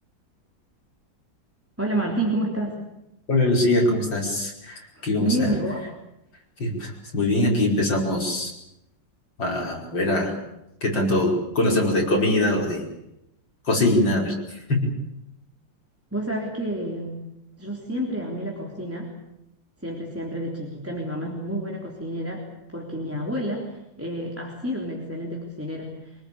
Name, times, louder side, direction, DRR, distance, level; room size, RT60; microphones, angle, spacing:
voice 1, 1.8-2.8 5.2-5.8 16.1-17.2 17.6-19.1 19.8-22.4 22.7-26.2, right 1 dB, 5° right, -1 dB, 3.5 m, -29 dB
voice 2, 3.3-5.5 6.6-8.5 9.4-10.3 10.8-12.9 13.6-14.9, left 1 dB, 75° left, -1 dB, 6.1 m, -23 dB
26.0 x 19.0 x 8.7 m, 0.87 s
omnidirectional pair, 2.0 m